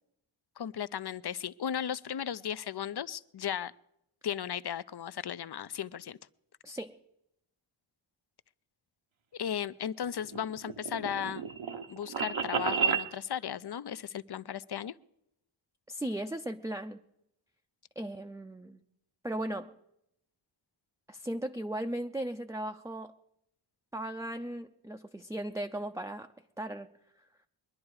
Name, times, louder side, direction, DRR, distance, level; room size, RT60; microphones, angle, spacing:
voice 1, 0.6-3.7 4.2-6.2 9.3-11.5 11.9-14.9, left 9 dB, 55° left, 18 dB, 0.5 m, -36 dB
voice 2, 6.6-7.0 15.9-17.0 18.0-18.8 19.2-19.7 21.1-23.1 23.9-26.3 26.6-26.9, right 1 dB, 5° right, 5 dB, 0.5 m, -37 dB
sound 1, 10.0-13.1, right 6 dB, 70° right, 1.0 m, -32 dB
22.0 x 10.5 x 4.8 m, 0.81 s
wide cardioid pair, 60°, 50 cm